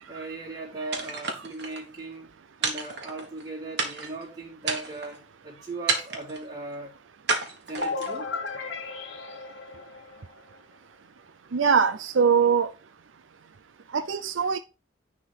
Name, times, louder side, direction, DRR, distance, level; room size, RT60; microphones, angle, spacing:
voice 1, 0.1-2.3 2.6-6.9 7.7-8.6 8.9-9.0, right 2 dB, 20° right, 3.6 m, -38 dB
sound 1, 0.9-1.8 2.6-3.4 3.8-4.2 4.6-5.2 5.9-6.4 7.3-8.2, right 4 dB, 60° right, 1.6 m, -30 dB
sound 2, 7.8-10.6, left 4 dB, 70° left, 1.4 m, -35 dB
voice 2, 11.5-12.7 13.9-14.6, right 6 dB, 85° right, 0.5 m, -22 dB
10.0 x 3.8 x 4.5 m
head